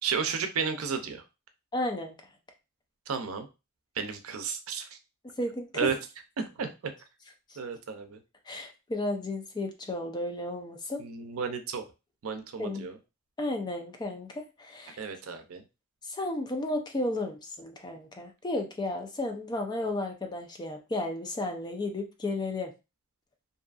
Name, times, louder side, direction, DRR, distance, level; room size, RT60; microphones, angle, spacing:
voice 1, 0.0-1.2 3.1-3.5 3.9-5.0 5.7-6.0 6.4-6.9 7.6-8.2 11.0-11.9 12.2-13.0 15.0-15.6, right 6 dB, 90° right, 7 dB, 0.5 m, -33 dB
voice 2, 1.7-2.1 5.4-5.7 7.5-7.6 8.5-11.0 12.6-12.9 13.4-15.0 16.0-22.7, left 2 dB, 20° left, 4 dB, 0.4 m, -33 dB
2.6 x 2.4 x 2.3 m, 0.27 s
head